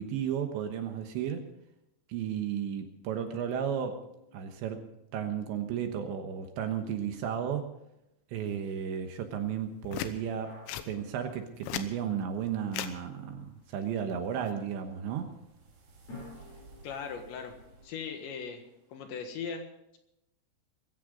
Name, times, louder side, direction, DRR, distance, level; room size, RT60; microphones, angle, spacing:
voice 1, 0.0-1.5 2.1-4.0 4.3-4.8 5.1-7.7 8.3-10.6 10.9-15.3, right 8 dB, 70° right, 6 dB, 3.2 m, -34 dB
sound 1, 3.3-6.6 10.5-12.4 16.1-19.2, left 2 dB, 40° left, 9.4 m, -54 dB
sound 2, 9.8-10.1 10.7-10.9 11.5-11.9 12.7-12.9 14.2-14.5, left 12 dB, 85° left, 3.6 m, -36 dB
sound 3, 13.7-19.0, right 3 dB, 35° right, 3.2 m, -58 dB
voice 2, 16.8-17.5 17.8-18.6 18.9-20.0, left 6 dB, 70° left, 5 dB, 3.5 m, -39 dB
22.0 x 14.5 x 3.9 m, 0.86 s
omnidirectional pair, 5.9 m